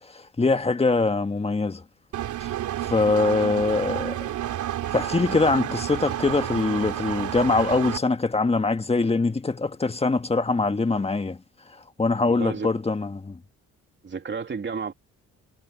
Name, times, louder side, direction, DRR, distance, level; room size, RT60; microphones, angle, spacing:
voice 1, 0.0-1.8 2.4-2.5 2.8-4.3 4.9-11.4 11.7-13.4, left 3 dB, 20° left, 1.7 m, -23 dB
Engine, 2.1-8.0, right 12 dB, 75° right, 3.1 m, -30 dB
voice 2, 12.3-12.7 14.0-14.9, right 5 dB, 40° right, 2.9 m, -32 dB
cardioid pair, 90°, 30 cm